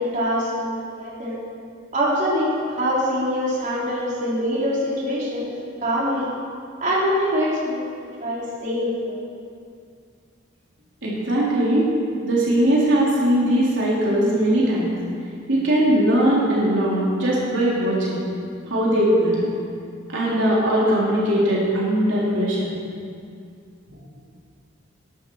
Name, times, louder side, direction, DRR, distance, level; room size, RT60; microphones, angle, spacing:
voice 1, 0.0-1.4 1.9-5.5 5.8-6.3 6.8-7.9 8.2-9.2, equal, 40° right, -7 dB, 4.0 m, -24 dB
voice 2, 11.0-11.9 12.2-15.0 15.5-18.3 18.7-19.5 20.1-22.7 23.9-24.0, right 1 dB, 70° right, -6 dB, 3.4 m, -20 dB
20.0 x 12.0 x 4.7 m, 2.3 s
head